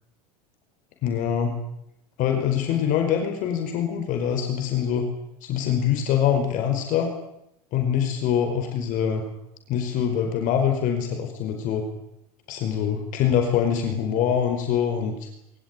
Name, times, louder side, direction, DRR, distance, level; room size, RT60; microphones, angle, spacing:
voice 1, 1.0-1.6 2.2-5.1 5.4-7.1 7.7-9.2 9.7-11.8 12.5-15.2, left 8 dB, 40° left, 5 dB, 5.0 m, -24 dB
22.5 x 20.5 x 9.8 m, 0.81 s
supercardioid pair, 145°, 19 cm